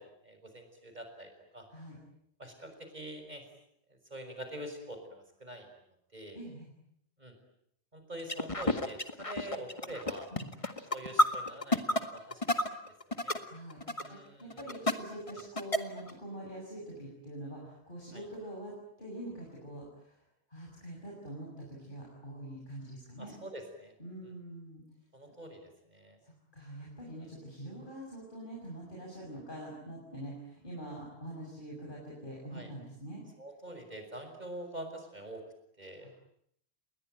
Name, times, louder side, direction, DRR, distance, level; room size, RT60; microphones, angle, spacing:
voice 1, 0.0-1.7 2.4-3.4 3.9-5.7 6.1-6.4 7.2-7.3 7.9-10.3 10.9-12.7 13.1-13.4 14.0-14.6 18.1-18.2 23.2-23.9 25.1-26.2 27.2-27.3 32.5-32.7 33.4-35.4 35.8-36.1, right 1 dB, 40° right, 6 dB, 6.3 m, -45 dB
voice 2, 6.3-6.7 10.3-10.5 13.5-13.8 14.1-20.2 20.5-23.4 24.0-24.8 26.2-33.2 36.0-36.1, right 1 dB, 50° left, -3 dB, 6.8 m, -45 dB
sound 1, 8.2-13.4 13.7-14.1 14.5-14.9 15.2-16.1, left 1 dB, 30° left, 1.9 m, -30 dB
29.5 x 21.5 x 9.2 m, 0.74 s
omnidirectional pair, 1.1 m